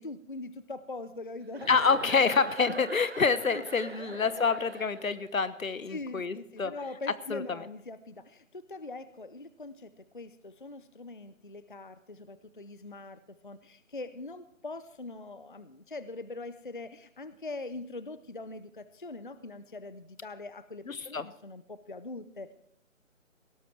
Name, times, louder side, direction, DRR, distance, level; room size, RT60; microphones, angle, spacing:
voice 1, 0.0-1.7 2.0-2.1 2.7-2.8 3.5-3.6 5.9-22.5, left 2 dB, 40° left, 14 dB, 0.5 m, -42 dB
Chuckle chortle, 1.5-5.3, right 5 dB, 50° right, 0.5 m, -43 dB
voice 2, 1.7-6.7 7.3-7.4 20.9-21.2, left 5 dB, 80° left, 15 dB, 1.2 m, -27 dB
17.5 x 12.5 x 4.5 m, 0.69 s
figure-of-eight pair, 165°, 40 cm